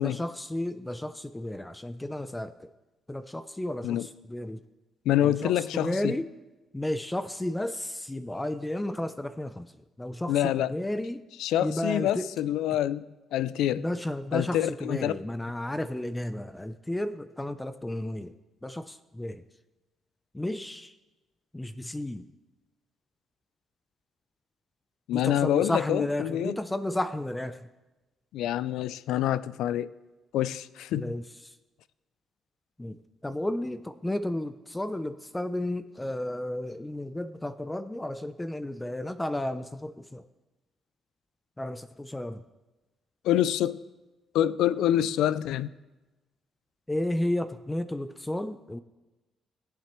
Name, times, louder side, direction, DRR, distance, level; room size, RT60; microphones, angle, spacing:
voice 1, 0.0-2.7 3.1-4.6 5.2-6.3 6.7-9.7 10.0-11.2 11.6-12.3 13.8-18.3 18.6-19.4 20.3-20.9 21.5-22.3 25.1-27.7 30.9-31.5 32.8-33.0 33.2-40.2 41.6-42.4 46.9-48.8, left 1 dB, 10° left, 0.5 m, -33 dB
voice 2, 5.1-6.1 10.3-10.7 11.4-13.8 14.3-15.2 25.1-26.5 28.3-29.9 30.3-31.1 43.2-43.8 44.3-45.7, left 12 dB, 85° left, 0.3 m, -26 dB
19.5 x 7.4 x 3.1 m
cardioid pair, 90°, 0 cm